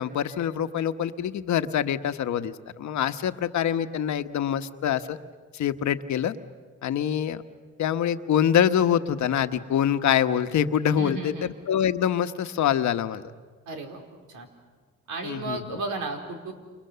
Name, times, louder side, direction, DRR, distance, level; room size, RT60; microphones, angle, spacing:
voice 1, 0.0-5.2 5.5-6.3 6.8-7.4 7.8-13.2 15.2-15.6, left 9 dB, 70° left, 10 dB, 1.2 m, -25 dB
voice 2, 11.0-11.5 13.7-14.0 14.3-14.5 15.1-16.5, right 3 dB, 80° right, 3 dB, 4.6 m, -34 dB
29.5 x 28.5 x 6.9 m, 1.5 s
cardioid pair, 90°, 30 cm